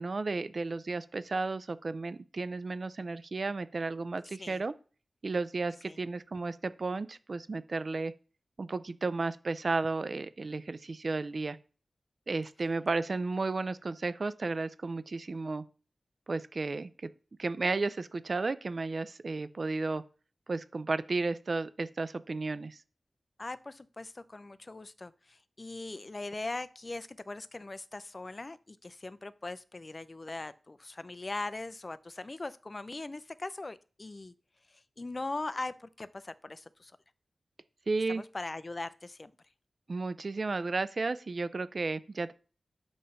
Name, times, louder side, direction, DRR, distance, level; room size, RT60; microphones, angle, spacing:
voice 1, 0.0-4.7 5.2-8.1 8.6-11.6 12.3-15.6 16.3-17.1 17.4-20.0 20.5-22.8 37.9-38.2 39.9-42.3, right 3 dB, 60° right, 14 dB, 0.5 m, -33 dB
voice 2, 23.4-34.3 35.0-36.9 38.1-39.3, left 2 dB, 45° left, 15 dB, 0.5 m, -40 dB
7.8 x 3.2 x 5.5 m, 0.37 s
cardioid pair, 50°, 0 cm